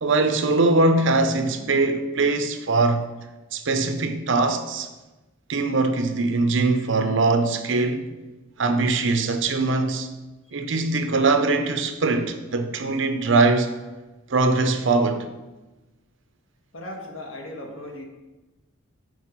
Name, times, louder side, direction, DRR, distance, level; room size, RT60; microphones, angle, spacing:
voice 1, 0.0-3.0 3.5-4.9 5.5-8.1 8.6-10.1 10.5-13.7 14.3-15.3, right 3 dB, 60° right, 0.7 m, -21 dB
voice 2, 16.7-18.0, left 1 dB, 85° left, 1.4 m, -37 dB
6.3 x 4.7 x 5.8 m
head